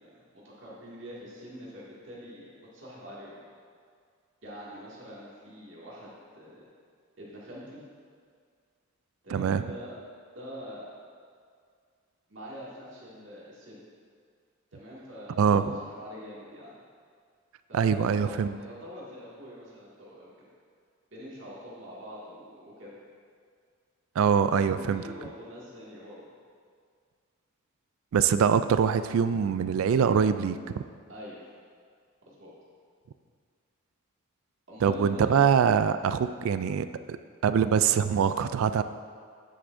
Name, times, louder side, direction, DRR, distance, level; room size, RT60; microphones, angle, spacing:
voice 1, 0.0-3.4 4.4-6.6 7.2-7.8 9.2-9.9 10.3-10.9 12.3-13.8 14.7-16.8 17.7-20.5 21.1-22.9 24.7-26.2 31.1-31.4 32.3-32.5 34.7-35.4, equal, 60° right, -6 dB, 2.1 m, -44 dB
voice 2, 9.3-9.6 15.4-15.8 17.7-18.6 24.2-25.0 28.1-30.8 34.8-37.2 37.4-38.8, right 7 dB, 75° right, 12 dB, 0.3 m, -24 dB
9.4 x 7.9 x 2.6 m, 2.1 s
head